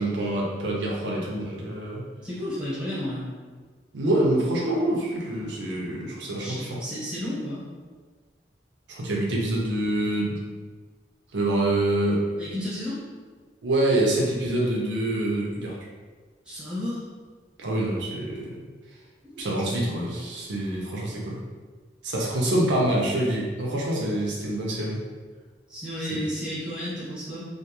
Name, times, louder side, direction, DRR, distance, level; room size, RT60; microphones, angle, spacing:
voice 1, 0.0-2.0 3.9-6.8 8.9-10.4 11.3-12.2 13.6-15.8 17.6-18.6 19.4-21.4 22.0-25.0, right 1 dB, 80° right, -3 dB, 0.5 m, -26 dB
voice 2, 2.2-3.3 6.4-7.6 12.4-13.0 16.4-17.0 19.2-19.9 25.7-27.5, equal, 5° right, -9 dB, 0.9 m, -32 dB
2.4 x 2.3 x 2.9 m, 1.5 s
head